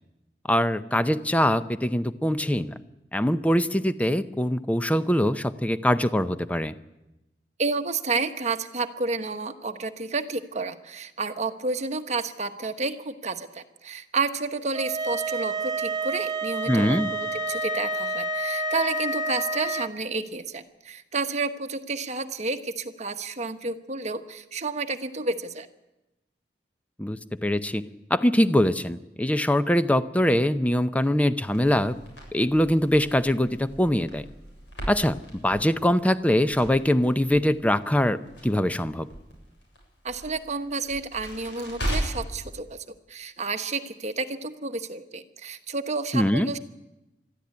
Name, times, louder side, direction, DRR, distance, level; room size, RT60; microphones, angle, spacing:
voice 1, 0.5-2.7 3.1-6.7 16.7-17.1 27.0-27.8 28.1-32.0 32.3-34.2 34.9-35.2 35.4-39.1 46.1-46.5, left 1 dB, 10° left, 12 dB, 0.7 m, -23 dB
voice 2, 7.6-25.7 40.0-46.6, right 3 dB, 40° right, 8 dB, 1.2 m, -30 dB
sound 1, 14.7-19.9, right 1 dB, 25° right, 0.9 m, -29 dB
Crackle, 31.4-42.4, equal, 85° left, 7.6 m, -38 dB
22.0 x 13.5 x 9.6 m, 0.98 s
head